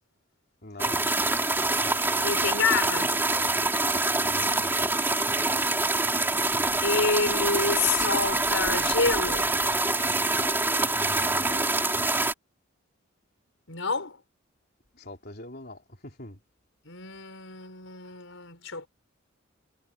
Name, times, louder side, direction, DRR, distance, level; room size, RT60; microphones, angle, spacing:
voice 1, 0.6-1.0 4.2-4.8 11.0-11.7 14.9-16.4, left 1 dB, 50° left, 3.8 m, -43 dB
sound 1, 0.8-12.3, right 2 dB, 10° right, 3.0 m, -25 dB
voice 2, 2.2-3.1 6.8-9.6 13.7-14.2 16.9-18.9, left 4 dB, 75° left, 5.4 m, -28 dB
head